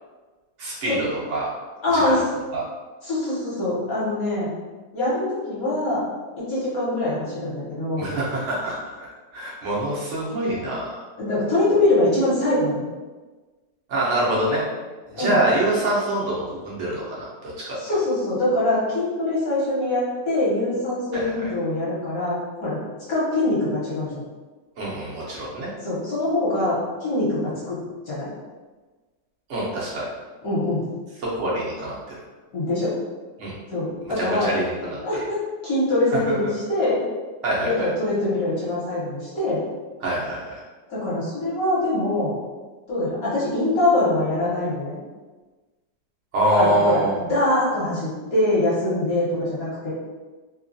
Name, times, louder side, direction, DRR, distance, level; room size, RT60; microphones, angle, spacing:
voice 1, 0.6-1.5 1.9-2.2 2.5-2.6 8.0-9.1 9.3-11.0 13.9-14.6 15.1-17.8 21.1-21.5 24.8-25.7 29.5-30.1 31.2-32.2 33.4-33.5 34.2-35.0 37.4-37.9 40.0-40.6 46.3-47.2, right 1 dB, 60° right, -6 dB, 0.8 m, -25 dB
voice 2, 1.8-2.2 3.0-4.5 4.9-6.0 6.4-8.1 11.2-12.8 15.1-15.4 17.8-22.8 23.1-24.2 25.8-27.4 27.7-27.8 28.1-28.3 30.4-30.8 32.5-32.9 33.7-34.6 35.0-37.0 37.6-39.6 40.9-42.3 42.9-45.0 46.5-47.0 47.3-49.9, left 2 dB, 55° left, -9 dB, 1.2 m, -23 dB
3.0 x 2.2 x 2.5 m, 1.3 s
omnidirectional pair, 2.0 m